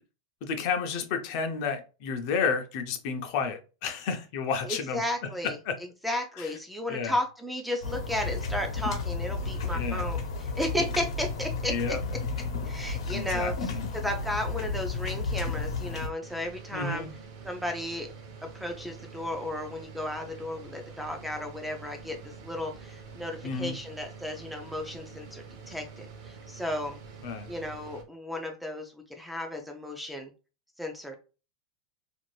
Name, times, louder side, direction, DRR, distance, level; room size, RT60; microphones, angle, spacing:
voice 1, 0.4-5.8 6.4-6.5 6.9-7.2 9.7-10.1 11.7-12.0 13.1-13.9 16.7-17.1 23.4-23.8 27.2-27.5, left 5 dB, 50° left, 7 dB, 0.5 m, -31 dB
voice 2, 4.6-5.6 6.0-12.0 12.6-17.1 17.4-18.1 18.4-27.0 27.5-30.3 30.8-31.2, left 1 dB, ahead, 3 dB, 0.3 m, -34 dB
sound 1, 7.8-16.1, left 4 dB, 90° left, 0.9 m, -32 dB
sound 2, 16.2-28.0, right 5 dB, 55° right, 0.8 m, -46 dB
2.6 x 2.5 x 3.1 m, 0.33 s
supercardioid pair, 150°, 3 cm